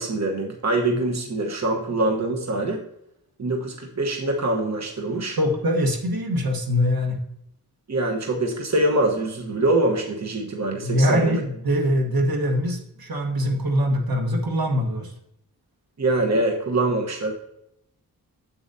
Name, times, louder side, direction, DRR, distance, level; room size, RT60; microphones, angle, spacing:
voice 1, 0.0-2.8 3.4-5.4 7.9-11.4 16.0-17.3, right 2 dB, 45° right, 2 dB, 1.1 m, -24 dB
voice 2, 5.4-7.2 10.8-15.1, equal, 70° right, 2 dB, 1.4 m, -23 dB
7.9 x 7.1 x 2.7 m, 0.79 s
wide cardioid pair, 100°, 37 cm